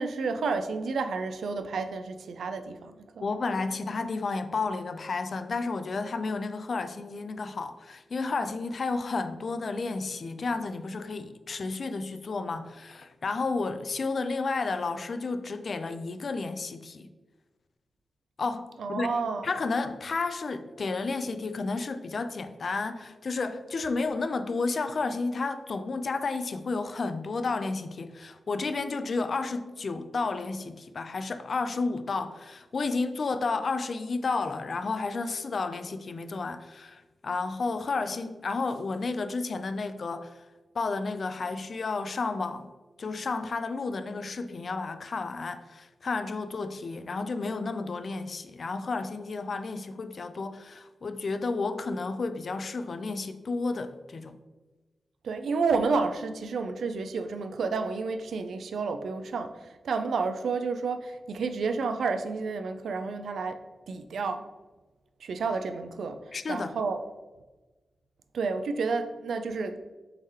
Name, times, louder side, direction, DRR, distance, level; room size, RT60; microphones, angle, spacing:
voice 1, 0.0-3.2 18.8-19.5 55.2-63.6 63.9-64.4 65.2-66.2 66.5-67.0 68.3-69.8, right 4 dB, 90° right, 0.3 m, -30 dB
voice 2, 3.2-17.1 18.4-40.4 40.7-42.7 43.0-54.4 66.3-66.8, left 3 dB, 60° left, 0.3 m, -32 dB
3.7 x 3.1 x 4.2 m
cardioid pair, 75°, 0 cm